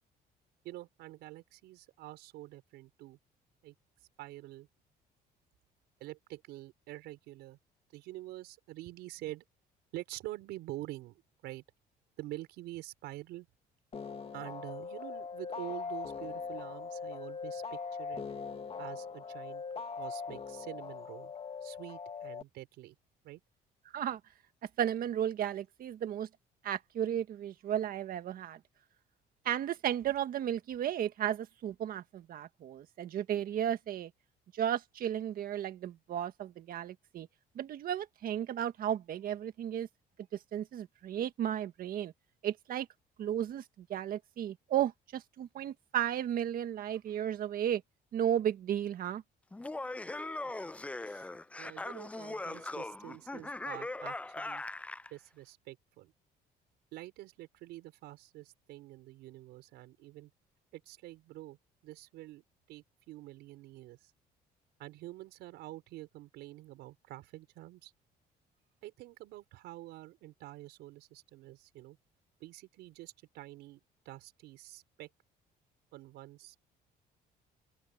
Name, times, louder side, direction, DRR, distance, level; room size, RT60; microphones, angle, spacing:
voice 1, 0.6-3.2 3.6-3.7 4.2-4.7 6.0-7.6 7.9-9.4 9.9-11.6 12.2-13.5 14.3-18.2 18.8-21.3 21.6-23.0 23.2-23.4 50.4-50.7 51.0-51.3 51.6-54.6 55.1-56.1 56.9-60.3 60.7-61.6 61.8-64.1 64.8-67.9 68.8-72.0 72.4-73.8 74.1-75.1 75.9-76.6, right 17 dB, 85° right, 5.5 m, -47 dB
sound 1, 13.9-22.4, left 5 dB, 35° left, 1.8 m, -41 dB
voice 2, 24.8-26.3 26.6-28.6 29.4-34.1 34.5-37.3 37.5-39.9 40.5-42.1 42.4-42.9 43.2-47.8 48.1-49.2, right 10 dB, 60° right, 1.6 m, -34 dB
Laughter, 49.5-55.1, left 2 dB, 10° left, 0.4 m, -40 dB
open air
cardioid pair, 110°, 17 cm